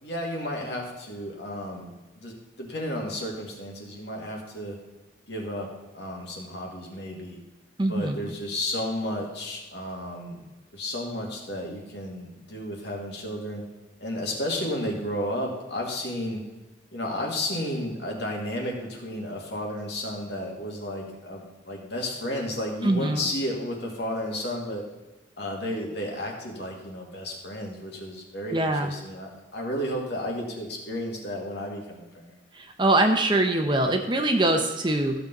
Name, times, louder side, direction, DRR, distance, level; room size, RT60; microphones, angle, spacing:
voice 1, 0.0-4.8 5.3-7.4 7.9-10.4 10.7-13.6 14.0-16.4 16.9-24.9 25.4-32.4, left 1 dB, 65° left, 0 dB, 2.3 m, -32 dB
voice 2, 7.8-8.2 22.8-23.2 28.5-28.9 32.8-35.1, right 2 dB, 25° right, 5 dB, 0.8 m, -23 dB
14.5 x 6.8 x 4.0 m, 1.1 s
head